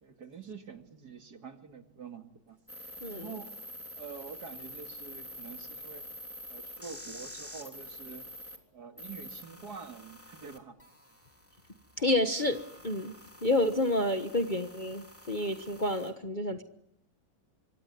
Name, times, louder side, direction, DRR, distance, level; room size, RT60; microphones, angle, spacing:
voice 1, 0.0-2.6 3.1-3.5 3.9-6.1 6.5-8.3 8.7-10.8, right 5 dB, 55° right, 6 dB, 2.7 m, -46 dB
sound 1, 2.7-8.6 9.0-16.1, equal, 5° left, 3.2 m, -47 dB
voice 2, 12.0-13.1 13.4-16.6, left 1 dB, 30° left, 6 dB, 1.3 m, -29 dB
26.0 x 23.5 x 9.5 m, 0.80 s
omnidirectional pair, 2.1 m